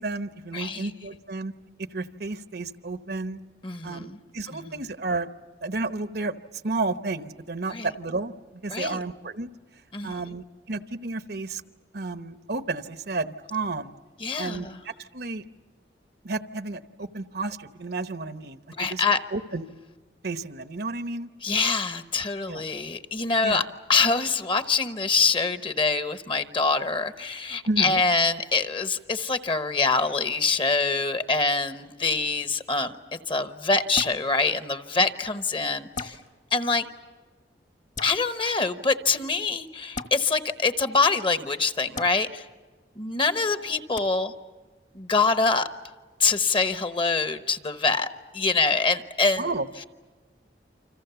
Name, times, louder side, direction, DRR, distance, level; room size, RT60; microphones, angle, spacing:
voice 1, 0.0-1.5 1.8-3.4 3.8-5.3 5.6-8.3 8.6-9.5 10.0-11.6 11.9-13.9 14.4-15.4 16.2-19.0 19.3-19.6 20.2-21.3 22.5-22.6 23.4-23.7 27.7-28.0 49.4-49.7, right 3 dB, 60° right, 11 dB, 1.0 m, -32 dB
voice 2, 0.5-0.9 3.6-4.2 4.5-4.8 7.7-7.9 8.7-9.0 9.9-10.3 14.2-14.8 18.7-19.2 21.4-23.6 23.9-36.2 36.5-36.9 38.0-42.5 43.0-44.3 44.9-45.7 46.2-49.5, left 4 dB, 30° left, 10 dB, 1.0 m, -25 dB
sound 1, 34.0-34.2 35.9-36.2 37.9-38.1 39.9-40.1 41.9-42.1 44.0-44.1, left 4 dB, 45° left, 1.5 m, -34 dB
29.0 x 26.0 x 7.0 m, 1.4 s
head